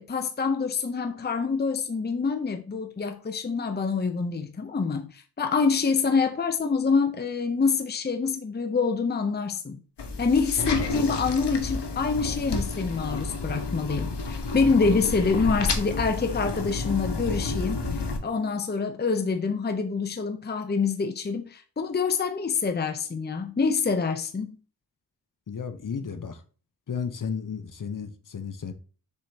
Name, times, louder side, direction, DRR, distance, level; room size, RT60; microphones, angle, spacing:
voice 1, 0.0-9.8 10.2-24.6, left 5 dB, 25° left, 0.6 m, -26 dB
sound 1, 10.0-18.2, left 3 dB, 85° left, 1.2 m, -30 dB
voice 2, 25.5-26.4 26.9-28.7, left 6 dB, 50° left, 0.9 m, -33 dB
7.0 x 5.0 x 2.8 m
wide cardioid pair, 150°, 40 cm